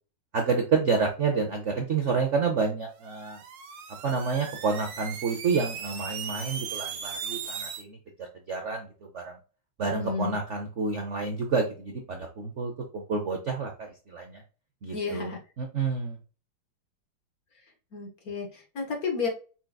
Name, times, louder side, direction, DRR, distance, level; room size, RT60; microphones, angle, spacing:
voice 1, 0.3-3.4 4.0-8.9 9.1-9.4 9.8-14.4 14.8-16.2, right 5 dB, 60° right, 2 dB, 0.8 m, -29 dB
sound 1, 3.0-7.8, right 7 dB, 85° right, 1.7 m, -38 dB
voice 2, 9.8-10.4 14.9-15.4 17.9-19.3, left 5 dB, 50° left, 2 dB, 1.5 m, -32 dB
5.8 x 3.8 x 2.3 m, 0.35 s
omnidirectional pair, 2.3 m